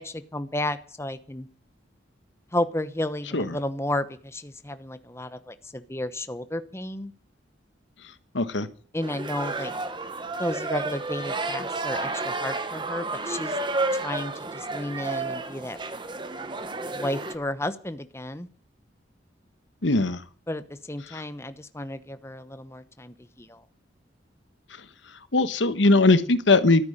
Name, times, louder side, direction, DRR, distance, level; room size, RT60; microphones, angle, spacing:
voice 1, 0.0-1.5 2.5-7.1 8.9-9.7 10.4-13.6 14.0-15.8 16.9-18.5 20.5-23.6, left 1 dB, 15° left, 11 dB, 1.0 m, -32 dB
voice 2, 8.3-8.7 19.8-20.2 21.1-21.2 25.3-26.9, left 2 dB, 85° left, 13 dB, 1.3 m, -20 dB
sound 1, 9.0-17.3, right 3 dB, 25° right, 1.3 m, -31 dB
13.5 x 9.6 x 9.0 m, 0.44 s
head